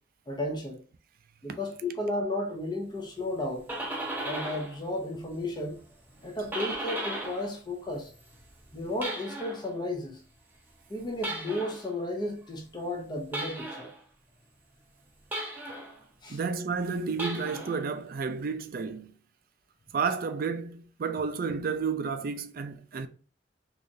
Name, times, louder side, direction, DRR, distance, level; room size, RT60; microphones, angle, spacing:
voice 1, 0.3-0.8 1.4-3.7 4.2-5.8 6.2-8.1 8.7-10.2 10.9-13.9 16.2-16.4, left 1 dB, 25° left, 0.8 m, -33 dB
sound 1, 3.4-4.8 5.1-7.5 7.8-9.7 11.2-11.9 13.3-14.0 15.3-16.0 17.1-17.8, right 1 dB, 10° right, 0.7 m, -36 dB
voice 2, 16.3-19.1 19.9-23.1, right 5 dB, 55° right, 0.4 m, -31 dB
3.8 x 3.0 x 2.6 m
head